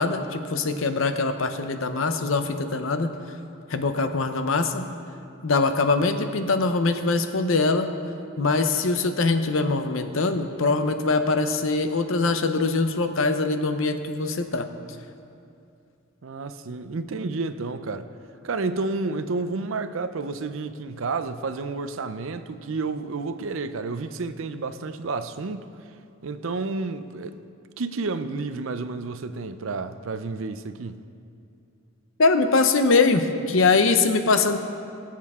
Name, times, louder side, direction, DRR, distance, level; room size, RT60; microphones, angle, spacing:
voice 1, 0.0-3.1 3.7-4.8 5.4-7.9 8.4-14.7 32.2-34.6, left 3 dB, 70° left, 8 dB, 0.7 m, -22 dB
voice 2, 16.2-18.1 18.4-25.7 26.2-27.4 27.8-31.0, right 3 dB, 70° right, 11 dB, 0.5 m, -30 dB
20.5 x 7.4 x 3.6 m, 2.5 s
head